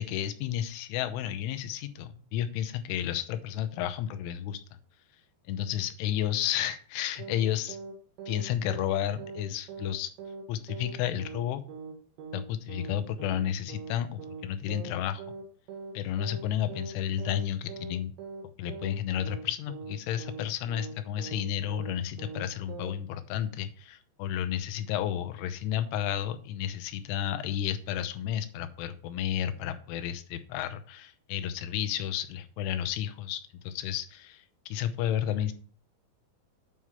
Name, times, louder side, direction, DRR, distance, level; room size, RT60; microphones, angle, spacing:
voice 1, 0.0-4.6 5.5-7.8 8.3-10.1 10.5-11.6 12.3-15.2 15.9-18.1 18.6-35.5, left 10 dB, 90° left, 10 dB, 3.3 m, -32 dB
sound 1, 7.2-7.4 7.7-7.9 8.2-8.4 8.7-8.9 9.2-9.4 9.7-9.9 10.2-10.4 10.7-10.9 11.2-11.4 11.7-11.9 12.2-12.4 12.7-12.9 13.2-13.4 13.7-13.9 14.2-14.4 14.7-14.9 15.2-15.4 15.7-15.9 16.2-16.4 16.7-16.9 17.2-17.4 17.7-17.9 18.2-18.4 18.7-18.9 19.2-19.4 19.7-19.9 20.2-20.4 20.7-20.9 21.2-21.4 21.7-21.9 22.2-22.4 22.7-22.9, right 4 dB, 75° right, 3.7 m, -41 dB
9.2 x 4.8 x 5.7 m, 0.43 s
omnidirectional pair, 5.4 m